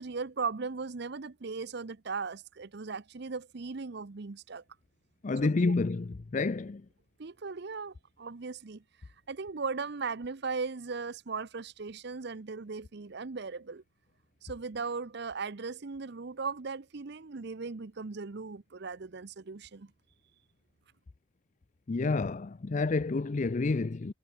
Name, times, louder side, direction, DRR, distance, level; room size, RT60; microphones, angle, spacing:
voice 1, 0.0-4.6 5.4-5.7 7.2-8.8 9.3-13.8 14.4-19.9, right 4 dB, 55° right, 0.7 m, -38 dB
voice 2, 5.2-6.8 21.9-24.1, left 3 dB, 40° left, 0.5 m, -29 dB
head